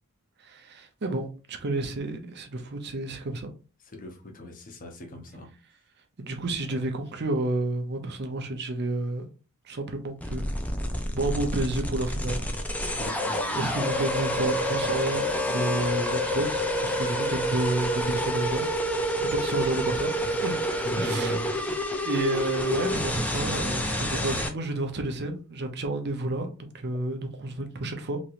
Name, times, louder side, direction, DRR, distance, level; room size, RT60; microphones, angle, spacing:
voice 1, 0.4-3.5 6.2-9.2 9.6-10.5 11.1-12.4 13.5-18.6 19.2-20.6 21.0-21.4 22.0-28.2, right 2 dB, 50° right, 0.6 m, -30 dB
voice 2, 3.8-5.5 13.0-13.6 20.8-21.5, left 1 dB, 40° left, 0.8 m, -37 dB
sound 1, 10.2-24.5, equal, 5° left, 0.4 m, -28 dB
3.0 x 2.8 x 2.5 m
head